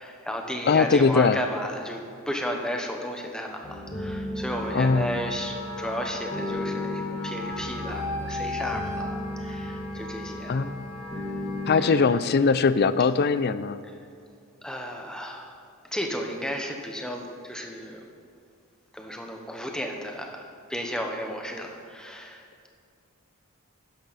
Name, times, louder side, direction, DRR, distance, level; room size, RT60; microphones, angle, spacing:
voice 1, 0.0-10.6 11.1-11.4 11.7-12.2 13.8-13.9 14.6-18.1 18.9-22.7, equal, 5° left, 2 dB, 1.0 m, -34 dB
voice 2, 0.7-1.4 4.7-5.1 10.5-10.7 11.7-13.8, left 4 dB, 45° left, 14 dB, 0.4 m, -21 dB
sound 1, 3.6-11.9, left 1 dB, 20° left, 1.7 m, -35 dB
Wind instrument woodwind instrument, 4.4-12.1, left 2 dB, 85° left, 1.8 m, -37 dB
12.5 x 10.0 x 4.1 m, 2.4 s
head